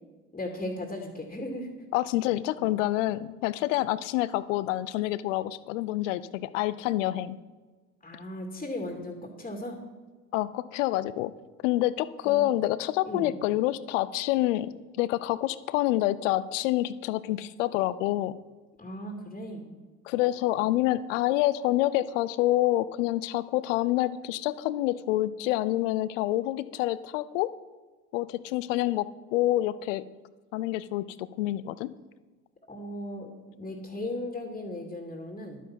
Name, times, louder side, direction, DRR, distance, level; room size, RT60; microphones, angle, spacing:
voice 1, 0.3-1.7 8.0-9.8 12.2-12.4 13.1-13.4 18.8-19.7 32.7-33.3 33.6-35.6, left 1 dB, 20° left, 3 dB, 2.4 m, -36 dB
voice 2, 1.9-7.4 10.3-11.3 11.6-18.3 20.0-27.5 28.1-30.0 30.5-31.9, left 15 dB, 75° left, 16 dB, 0.7 m, -27 dB
11.5 x 9.2 x 5.8 m, 1.3 s
hypercardioid pair, 65°, 38 cm